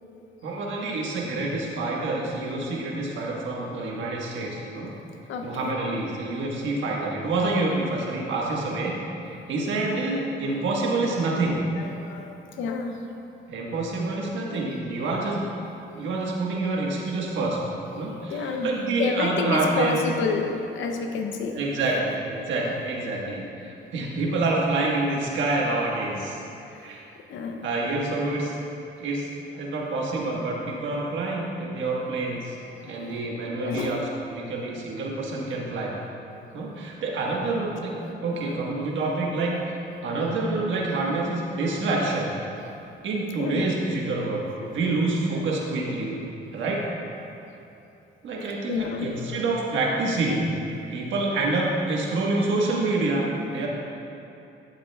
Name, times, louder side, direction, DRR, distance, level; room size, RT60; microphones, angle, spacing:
voice 1, 0.4-4.9 5.4-8.9 9.5-11.6 13.5-15.4 15.9-17.6 17.9-20.0 21.5-26.4 26.8-27.1 27.6-28.5 29.0-29.3 29.6-32.6 32.8-34.0 34.3-35.9 36.5-37.9 38.2-39.6 40.0-42.3 43.0-46.2 46.5-46.9 48.2-50.5 50.9-53.7, right 2 dB, 70° right, -3 dB, 1.4 m, -27 dB
voice 2, 5.3-5.7 11.8-13.1 14.4-14.6 15.1-15.5 15.9-16.2 17.9-18.7 19.0-21.6 24.0-24.1 26.6-28.2 29.5-30.1 32.7-33.1 33.6-34.0 38.0-38.6 39.0-39.1 43.4-43.7 44.1-44.2 44.6-44.8 48.7-49.5, left 5 dB, 75° left, 4 dB, 0.6 m, -32 dB
11.0 x 7.4 x 2.3 m, 2.8 s
cardioid pair, 90°, 20 cm